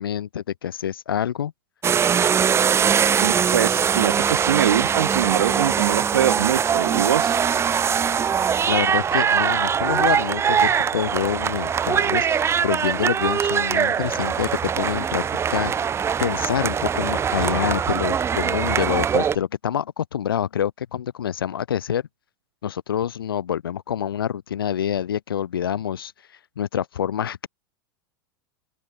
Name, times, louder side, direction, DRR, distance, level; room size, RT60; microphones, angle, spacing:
voice 1, 0.0-1.5 8.6-15.8 16.2-22.0 22.6-26.1 26.6-27.5, left 9 dB, 90° left, 0.9 m, -26 dB
sound 1, 1.8-19.4, right 7 dB, 20° right, 0.8 m, -22 dB
voice 2, 3.2-7.4, right 10 dB, 90° right, 0.5 m, -23 dB
open air
hypercardioid pair, 105°, 12 cm